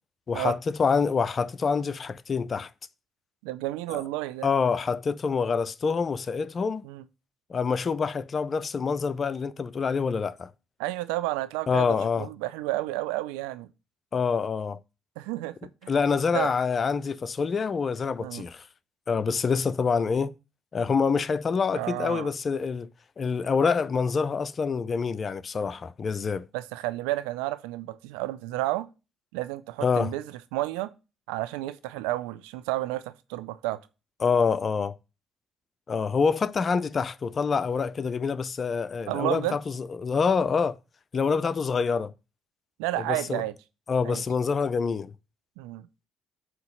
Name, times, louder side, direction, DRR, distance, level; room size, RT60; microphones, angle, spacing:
voice 1, 0.3-2.7 3.9-4.0 4.4-6.8 7.5-10.5 11.7-12.3 14.1-14.8 15.9-18.7 19.1-20.4 20.7-22.9 23.2-26.5 29.8-30.1 34.2-34.9 35.9-40.8 41.1-42.1 43.0-43.4 43.9-45.1, left 5 dB, 45° left, 0.5 m, -26 dB
voice 2, 3.4-4.5 6.8-7.0 10.8-13.7 15.2-16.0 16.3-16.5 18.2-18.4 21.7-22.3 26.5-28.9 29.3-30.9 31.3-33.8 39.1-39.6 42.8-43.5 44.0-44.2 45.6-45.9, right 17 dB, 85° right, 0.4 m, -31 dB
7.7 x 2.9 x 5.6 m
hypercardioid pair, 55°, 0 cm